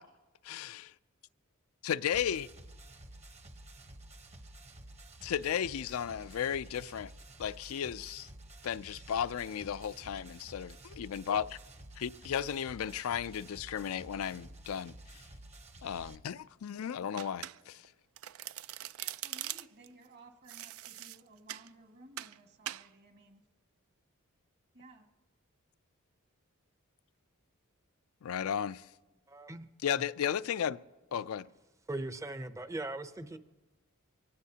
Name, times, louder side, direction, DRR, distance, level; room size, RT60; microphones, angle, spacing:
voice 1, 0.4-0.9 1.8-2.5 5.2-7.1 7.4-8.3 8.6-11.6 12.0-14.9 15.8-17.9 28.2-28.9 29.8-30.8 31.1-31.5, left 8 dB, 75° left, 0.4 m, -34 dB
sound 1, 2.1-16.2, right 1 dB, 30° right, 0.9 m, -52 dB
Domestic sounds home sounds, 17.2-17.9 18.2-19.9 20.5-21.7 22.2-22.4 22.7-22.9, right 13 dB, 75° right, 0.4 m, -42 dB
voice 2, 19.0-23.4 24.7-25.1, right 2 dB, 55° right, 1.9 m, -57 dB
voice 3, 29.3-29.7 31.9-33.4, right 2 dB, 15° right, 0.6 m, -39 dB
24.0 x 18.0 x 2.8 m
head